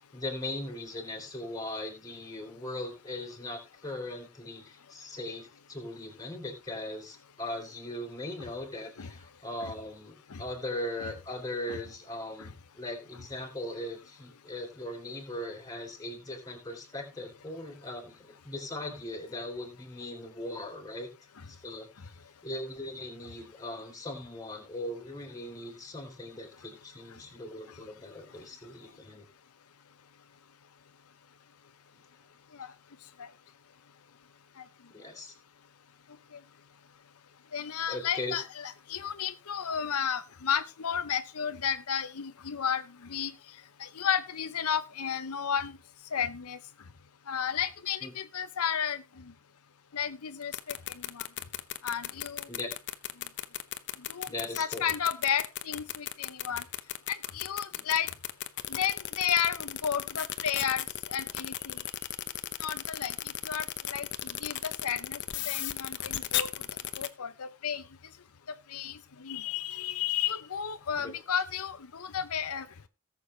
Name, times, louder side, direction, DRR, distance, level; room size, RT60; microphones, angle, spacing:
voice 1, 0.0-21.1 21.5-21.9 22.4-29.3 34.9-35.3 37.9-38.4 48.0-48.1 52.5-52.7 54.3-54.9 57.7-57.8 71.0-71.2, left 1 dB, 15° left, 2 dB, 3.4 m, -39 dB
voice 2, 37.5-43.3 43.8-45.8 46.1-46.6 47.3-49.2 49.9-51.3 51.8-52.5 54.1-54.3 54.6-56.6 57.1-58.1 58.7-61.8 62.6-63.1 63.4-65.2 65.5-66.5 67.0-67.8 68.7-72.7, left 8 dB, 85° left, 10 dB, 0.8 m, -32 dB
sound 1, 50.4-67.1, left 12 dB, 55° left, 0.9 m, -34 dB
18.0 x 7.0 x 3.3 m, 0.27 s
head